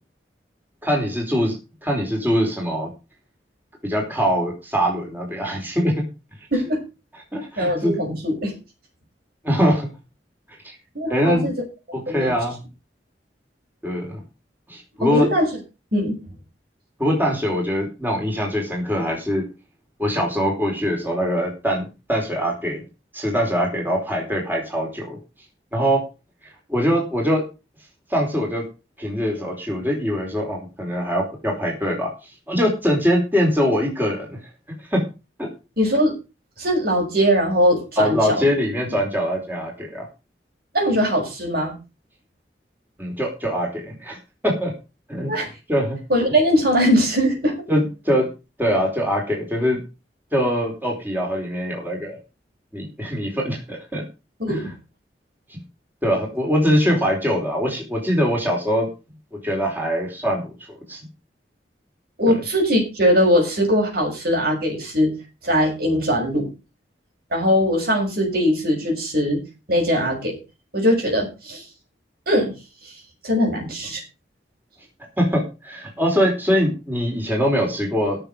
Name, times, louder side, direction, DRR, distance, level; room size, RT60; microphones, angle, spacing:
voice 1, 0.8-1.5 1.8-2.9 3.8-5.9 7.3-8.2 9.4-9.9 11.1-11.5 12.1-12.6 13.8-14.1 14.7-15.3 17.0-19.4 20.0-22.8 23.1-25.2 25.7-26.0 26.7-27.4 28.1-28.6 29.0-34.4 34.9-35.0 35.4-35.5 38.0-40.1 43.0-44.2 44.4-44.7 45.1-45.3 45.7-46.0 47.7-48.3 48.6-49.8 50.3-52.2 52.7-54.0 54.5-54.7 56.0-58.9 59.4-61.0 62.3-62.4 75.2-78.2, equal, 10° right, -1 dB, 4.6 m, -22 dB
voice 2, 7.6-8.5 10.9-11.5 11.9-12.3 15.0-15.5 15.9-16.2 35.8-36.1 36.6-38.5 38.8-38.9 40.7-41.7 45.3-45.5 46.1-47.5 54.4-54.7 62.2-65.1 65.4-66.5 67.3-69.4 69.7-70.4 70.7-71.6 72.3-72.5 72.8-72.9 73.2-74.0, equal, 60° right, 1 dB, 6.5 m, -20 dB
17.0 x 7.0 x 5.2 m, 0.30 s
head